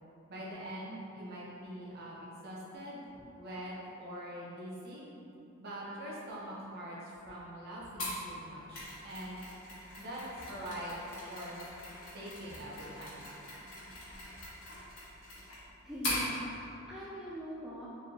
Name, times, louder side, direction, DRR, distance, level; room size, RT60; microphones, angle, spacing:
voice 1, 0.3-3.0 3.4-5.1 5.6-9.4 10.0-11.6 12.1-13.3, equal, 45° right, -6 dB, 0.8 m, -43 dB
Mechanisms, 8.0-16.3, left 1 dB, 60° left, 1.4 m, -42 dB
voice 2, 15.8-17.9, equal, 5° right, -8 dB, 0.3 m, -42 dB
4.4 x 3.5 x 2.8 m, 3.0 s
head